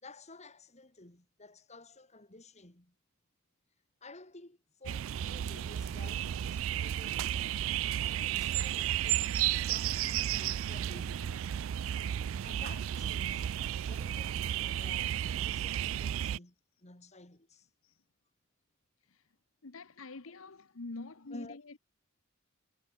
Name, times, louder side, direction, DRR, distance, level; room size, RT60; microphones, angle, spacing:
voice 1, 0.0-2.9 4.0-7.5 8.0-11.5 12.4-17.7 21.3-21.8, left 2 dB, 30° left, 3.0 m, -53 dB
sound 1, 4.8-16.4, right 11 dB, 65° right, 0.3 m, -33 dB
voice 2, 19.6-21.8, left 3 dB, 70° left, 1.1 m, -46 dB
head